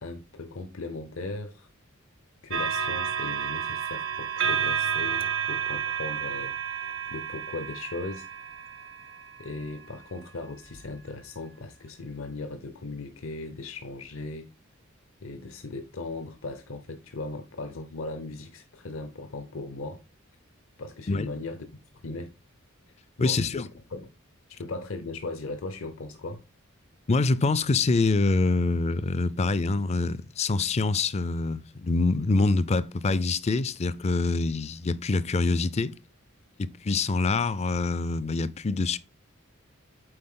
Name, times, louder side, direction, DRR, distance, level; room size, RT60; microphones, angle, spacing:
voice 1, 0.0-1.7 2.4-8.3 9.4-14.5 15.2-20.0 20.8-21.6 22.0-22.3 23.2-24.1 24.5-26.4, left 3 dB, 75° left, 0.7 m, -38 dB
sound 1, 2.5-10.0 10.7-10.9, right 7 dB, 65° right, 0.9 m, -31 dB
voice 2, 23.2-23.7 27.1-36.0 36.6-39.0, left 3 dB, 30° left, 0.4 m, -25 dB
7.8 x 4.5 x 3.7 m
head